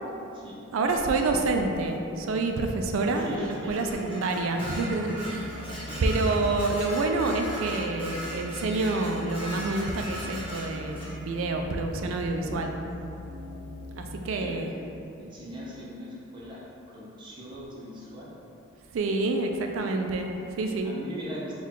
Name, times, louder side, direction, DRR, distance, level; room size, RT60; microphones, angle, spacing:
voice 1, 0.7-5.7 6.0-12.7 14.0-14.7 18.9-20.9, right 3 dB, 75° right, 4 dB, 0.3 m, -28 dB
voice 2, 3.1-3.8 5.7-6.1 14.2-14.7 15.2-18.3 20.8-21.6, equal, 20° right, -6 dB, 0.6 m, -41 dB
Dishes pots and pans, 3.4-11.1, right 1 dB, 25° left, 1.1 m, -39 dB
sound 1, 5.3-14.6, left 2 dB, 55° left, 0.3 m, -42 dB
4.5 x 2.3 x 3.7 m, 2.8 s
head